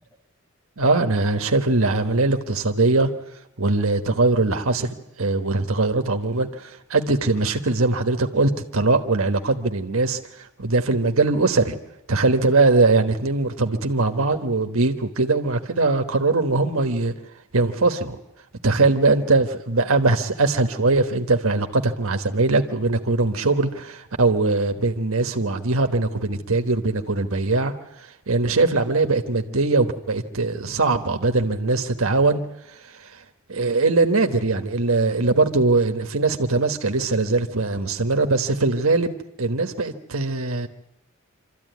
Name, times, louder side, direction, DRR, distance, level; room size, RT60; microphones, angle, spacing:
voice 1, 0.8-3.1 3.6-4.9 5.2-11.7 12.1-17.1 17.5-18.2 18.6-27.7 28.3-32.4 33.5-40.7, right 3 dB, 80° right, 6 dB, 1.3 m, -21 dB
25.5 x 13.5 x 9.3 m, 0.90 s
head